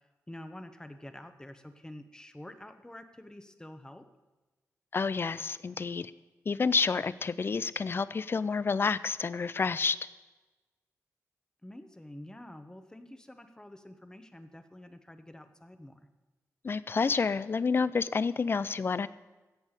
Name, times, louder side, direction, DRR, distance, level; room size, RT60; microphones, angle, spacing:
voice 1, 0.0-4.0 11.6-16.0, left 1 dB, 10° left, 8 dB, 1.0 m, -48 dB
voice 2, 4.9-6.1 6.5-10.0 16.6-19.1, left 5 dB, 40° left, 17 dB, 0.4 m, -29 dB
16.0 x 5.5 x 6.6 m, 1.2 s
cardioid pair, 85°, 6 cm